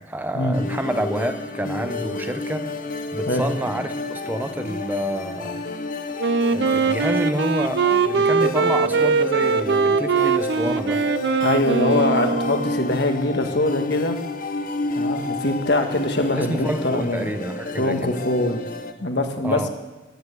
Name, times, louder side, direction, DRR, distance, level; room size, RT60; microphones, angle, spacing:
voice 1, 0.0-2.6 3.1-5.6 6.5-11.0 16.4-18.1 19.4-19.7, right 1 dB, 10° right, 8 dB, 0.6 m, -28 dB
sound 1, 0.5-18.9, left 2 dB, 45° left, 0.9 m, -30 dB
Wind instrument woodwind instrument, 6.2-12.9, right 4 dB, 60° right, 0.5 m, -21 dB
voice 2, 11.4-14.2 14.9-17.3 17.8-18.6 19.0-19.6, left 2 dB, 60° left, 5 dB, 1.6 m, -23 dB
15.0 x 10.5 x 8.2 m, 1.2 s
head